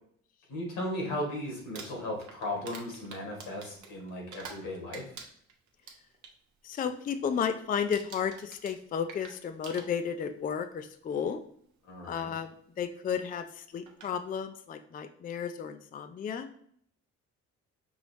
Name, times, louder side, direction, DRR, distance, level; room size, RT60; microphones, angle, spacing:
voice 1, 0.5-5.1 11.8-12.3, left 1 dB, 90° left, -1 dB, 1.9 m, -36 dB
Crumpling crinkling, 1.6-4.7 4.9-6.3 6.7-7.0 7.3-7.6 7.9-10.3 11.3-11.4 13.3-13.4 13.9-14.1, right 5 dB, 75° right, 0.9 m, -47 dB
voice 2, 6.6-11.4 12.0-16.5, left 7 dB, 30° left, 8 dB, 0.4 m, -33 dB
5.4 x 3.0 x 3.3 m, 0.63 s
cardioid pair, 90°, 30 cm